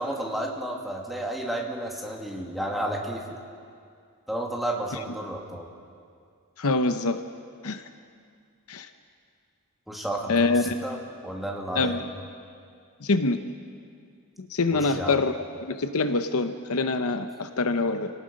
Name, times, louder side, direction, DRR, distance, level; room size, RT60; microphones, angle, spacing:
voice 1, 0.0-3.4 4.3-5.7 9.9-11.0 11.2-12.0 14.7-15.2, right 1 dB, ahead, -1 dB, 2.4 m, -32 dB
voice 2, 6.6-7.2 7.6-7.9 8.7-8.9 10.3-10.7 11.7-12.0 13.0-13.4 14.4-15.3 15.6-18.1, left 3 dB, 70° left, 9 dB, 0.9 m, -25 dB
29.5 x 18.5 x 5.4 m, 2.2 s
head